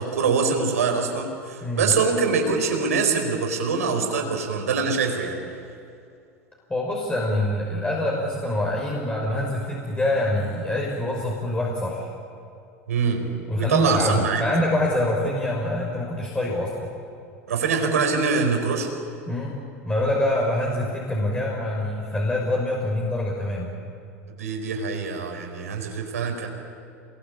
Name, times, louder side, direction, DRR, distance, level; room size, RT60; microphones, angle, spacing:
voice 1, 0.0-5.4 12.9-13.3 13.6-14.6 17.5-18.9 24.4-26.5, right 5 dB, 75° right, 3 dB, 5.0 m, -24 dB
voice 2, 6.7-12.1 13.5-16.9 19.3-19.6 19.8-23.7, left 1 dB, 15° left, -3 dB, 6.0 m, -25 dB
28.0 x 22.0 x 8.8 m, 2.5 s
hypercardioid pair, 85°, 8 cm